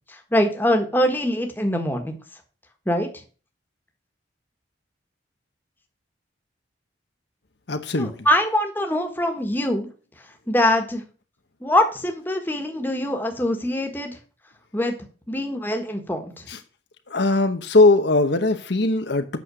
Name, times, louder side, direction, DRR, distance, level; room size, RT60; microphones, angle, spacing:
voice 1, 0.1-2.1 2.8-3.2 8.0-9.9 10.5-11.0 11.6-14.2 14.7-14.9 15.3-16.5, left 1 dB, 10° left, 4 dB, 1.5 m, -23 dB
voice 2, 7.7-8.2 16.5-16.6 17.1-19.4, left 2 dB, 65° left, 8 dB, 0.9 m, -20 dB
8.5 x 6.4 x 6.3 m, 0.37 s
head